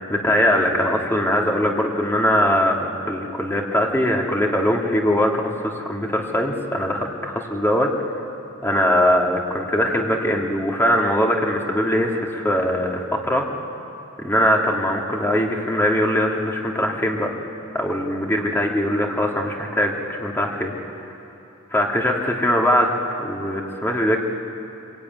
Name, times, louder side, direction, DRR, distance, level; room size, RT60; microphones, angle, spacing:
voice 1, 0.1-7.9 8.6-12.1 12.4-13.5 14.2-17.3 17.7-20.7 21.7-22.9 23.2-24.2, equal, 10° left, 0 dB, 2.6 m, -21 dB
24.5 x 23.5 x 9.5 m, 2.8 s
head